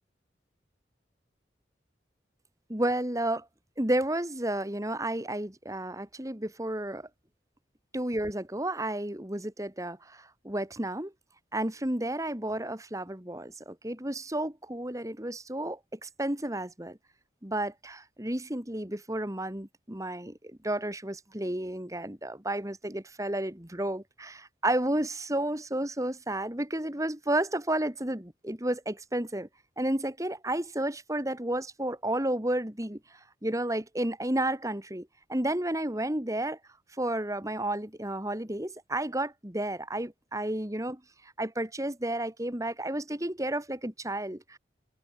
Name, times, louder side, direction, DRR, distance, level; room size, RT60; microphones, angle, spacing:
voice 1, 2.7-3.4 3.8-7.1 7.9-11.1 11.5-17.0 17.4-29.5 29.8-33.0 33.4-36.6 37.0-41.0 41.4-44.6, right 1 dB, 20° right, 2.3 m, -32 dB
open air
head